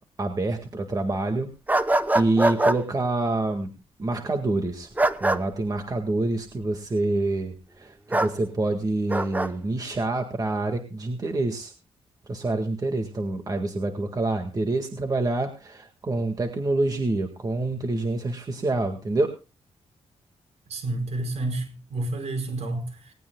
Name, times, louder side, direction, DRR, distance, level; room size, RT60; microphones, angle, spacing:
voice 1, 0.2-1.5 2.1-3.7 4.0-4.9 5.2-11.7 12.3-19.3, right 2 dB, 35° right, 1.8 m, -27 dB
sound 1, 1.7-2.8 5.0-5.4 8.1-8.3 9.1-9.5, right 2 dB, 15° right, 0.9 m, -22 dB
voice 2, 20.7-23.1, right 2 dB, 75° right, 5.1 m, -30 dB
19.5 x 18.5 x 2.3 m
wide cardioid pair, 120°, 11 cm